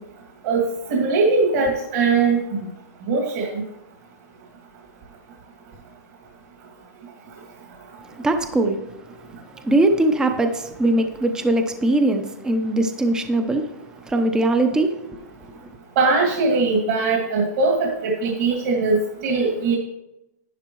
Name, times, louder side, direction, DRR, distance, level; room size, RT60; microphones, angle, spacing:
voice 1, 0.9-2.4 3.1-3.5 16.0-19.8, right 4 dB, 50° right, 2.2 m, -20 dB
voice 2, 8.2-8.8 9.6-13.7 14.0-15.2, right 2 dB, 5° right, 0.7 m, -21 dB
11.0 x 10.5 x 3.1 m
hypercardioid pair, 150°, 10 cm